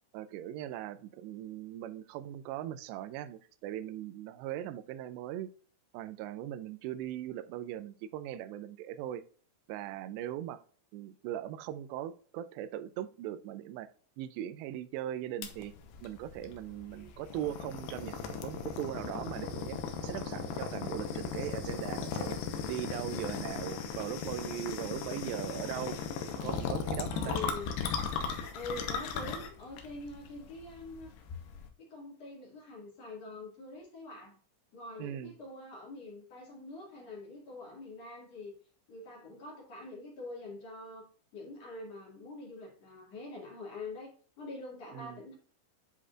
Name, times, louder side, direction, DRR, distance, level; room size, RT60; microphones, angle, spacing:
voice 1, 0.1-5.5 5.9-9.2 9.7-10.6 10.9-13.9 14.2-15.7 16.0-19.8 20.0-22.4 22.7-26.0 26.4-27.4 35.0-35.3 44.9-45.2, right 12 dB, 85° right, 12 dB, 2.8 m, -39 dB
sound 1, 15.4-31.7, left 6 dB, 80° left, 2.8 m, -37 dB
voice 2, 27.1-27.8 28.5-31.1 31.8-34.4 34.7-38.5 38.9-41.1 41.3-45.4, left 2 dB, 45° left, -3 dB, 2.6 m, -45 dB
10.0 x 4.2 x 2.4 m, 0.43 s
omnidirectional pair, 4.9 m